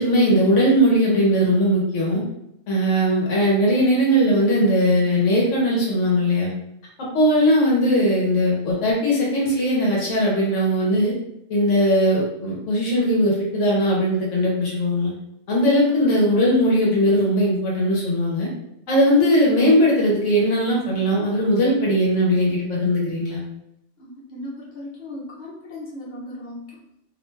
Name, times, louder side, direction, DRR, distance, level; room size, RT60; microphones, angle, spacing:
voice 1, 0.0-2.2 2.7-6.5 7.1-11.1 11.5-15.1 15.5-18.5 18.9-23.4, equal, 75° left, -4 dB, 1.1 m, -19 dB
voice 2, 24.0-26.8, left 1 dB, 40° left, -6 dB, 1.0 m, -37 dB
2.6 x 2.1 x 3.1 m, 0.81 s
omnidirectional pair, 1.3 m